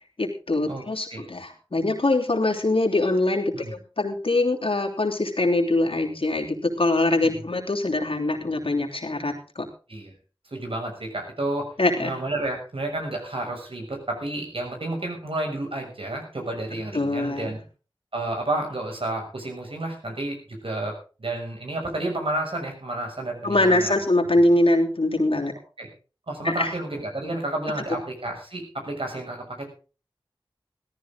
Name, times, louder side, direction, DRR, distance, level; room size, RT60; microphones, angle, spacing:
voice 1, 0.2-9.7 11.8-12.2 16.7-17.5 23.4-25.5 26.4-26.7 27.9-28.0, left 2 dB, 80° left, 2 dB, 3.2 m, -23 dB
voice 2, 10.5-11.7 12.0-17.6 18.1-20.9 21.2-23.9 25.8-25.9 26.3-29.6, right 2 dB, 80° right, 2 dB, 6.6 m, -31 dB
17.5 x 14.0 x 3.8 m, 0.35 s
wide cardioid pair, 50°, 9 cm